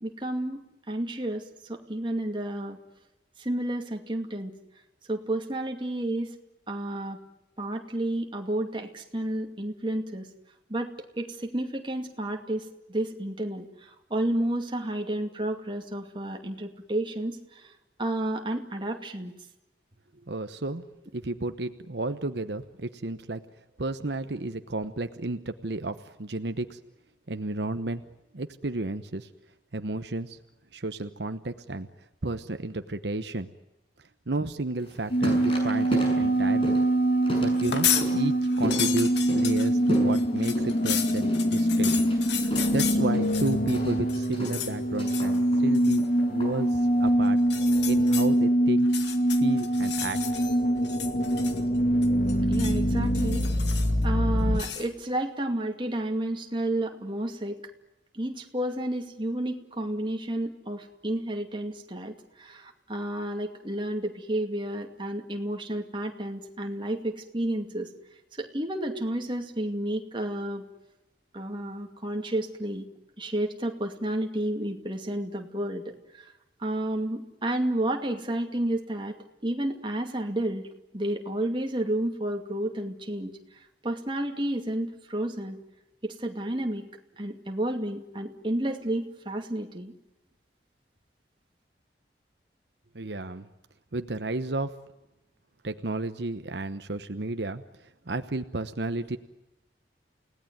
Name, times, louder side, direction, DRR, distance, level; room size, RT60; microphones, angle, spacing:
voice 1, 0.0-2.8 3.4-4.5 5.1-6.3 6.7-7.2 7.6-10.3 10.7-17.7 18.0-19.3 52.5-53.5 54.0-57.6 58.1-67.9 68.3-70.6 71.3-72.9 73.2-76.3 76.6-80.7 80.9-83.4 83.8-85.6 86.0-86.8 87.2-89.9, right 1 dB, 25° right, 3 dB, 2.4 m, -31 dB
voice 2, 20.3-20.8 21.1-23.4 23.8-26.8 27.3-28.0 28.3-29.3 29.7-30.4 30.7-31.9 32.2-33.5 34.3-36.8 37.4-41.9 42.4-47.4 47.9-48.9 49.4-50.2 92.9-93.5 93.9-94.8 95.6-99.2, right 2 dB, 75° right, 9 dB, 1.0 m, -32 dB
sound 1, 34.8-47.1, equal, 30° left, 7.1 m, -37 dB
sound 2, 35.1-54.6, right 1 dB, 50° left, 1.8 m, -24 dB
sound 3, 37.5-38.1 38.4-43.8 44.1-44.7 45.1-45.4 45.7-46.1 47.4-48.3 48.8-50.6 50.8-51.8 52.0-52.8 53.1-54.0 54.6-54.9, left 9 dB, 80° left, 2.1 m, -33 dB
29.5 x 18.0 x 9.4 m, 0.95 s
head